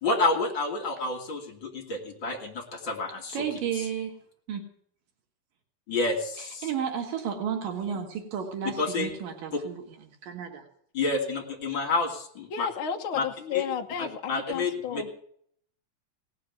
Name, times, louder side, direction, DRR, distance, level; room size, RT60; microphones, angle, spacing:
voice 1, 0.0-3.4 5.9-6.7 8.8-9.1 10.9-12.7 13.1-13.2 13.5-13.6 14.0-15.0, left 3 dB, 35° left, 1 dB, 3.1 m, -29 dB
voice 2, 3.3-4.1 4.5-4.7 6.4-9.8 10.2-10.7, right 8 dB, 90° right, 3 dB, 3.5 m, -32 dB
voice 3, 12.5-15.1, left 8 dB, 55° left, 1 dB, 1.5 m, -32 dB
18.0 x 6.7 x 9.5 m, 0.65 s
omnidirectional pair, 3.8 m